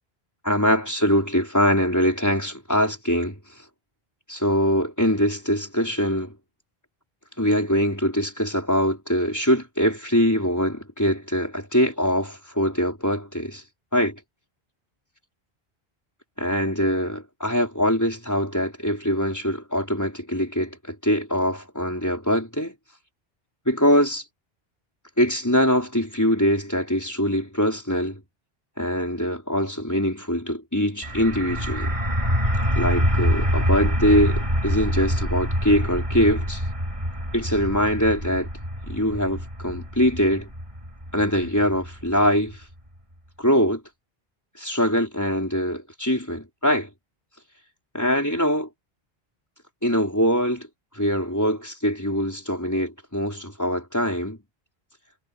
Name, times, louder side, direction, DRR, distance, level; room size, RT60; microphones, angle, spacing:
voice 1, 0.4-3.3 4.3-6.3 7.4-13.6 13.9-14.2 16.4-22.7 23.7-24.2 25.2-28.2 28.8-31.9 32.8-36.6 37.3-38.5 38.9-40.5 41.1-42.6 43.4-43.8 44.6-46.9 47.9-48.7 49.8-50.7 50.9-54.4, equal, 15° left, 4.4 m, -23 dB
sound 1, 31.0-42.5, equal, 30° right, 5.2 m, -25 dB
omnidirectional pair, 1.0 m